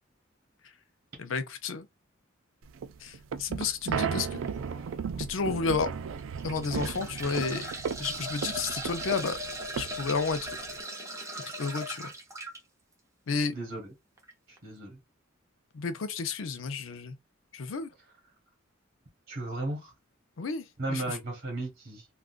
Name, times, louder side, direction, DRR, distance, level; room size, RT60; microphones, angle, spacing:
voice 1, 1.2-1.9 3.0-4.4 5.2-5.9 6.4-7.7 8.0-9.4 9.8-10.6 11.6-12.1 13.3-13.6 15.7-17.2 17.5-17.9 20.4-21.2, left 4 dB, 70° left, 0.5 m, -31 dB
sound 1, 2.7-10.8, right 6 dB, 70° right, 0.4 m, -35 dB
sound 2, 4.3-4.5 5.1-5.2 6.2-12.6 14.2-14.3 14.6-14.7, right 1 dB, 15° right, 0.8 m, -38 dB
voice 2, 13.5-13.9 14.6-15.0 19.3-19.9 20.8-22.0, right 2 dB, 50° right, 1.2 m, -35 dB
3.6 x 2.4 x 2.4 m
head